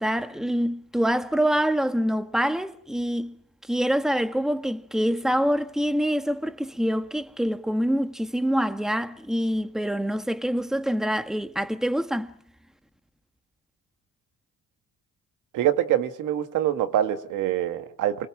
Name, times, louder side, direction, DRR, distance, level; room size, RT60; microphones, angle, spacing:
voice 1, 0.0-3.4 3.7-12.3, equal, ahead, 1.6 m, -25 dB
voice 2, 15.5-18.3, right 11 dB, 90° right, 1.9 m, -25 dB
28.5 x 21.5 x 7.5 m
cardioid pair, 90°, 30 cm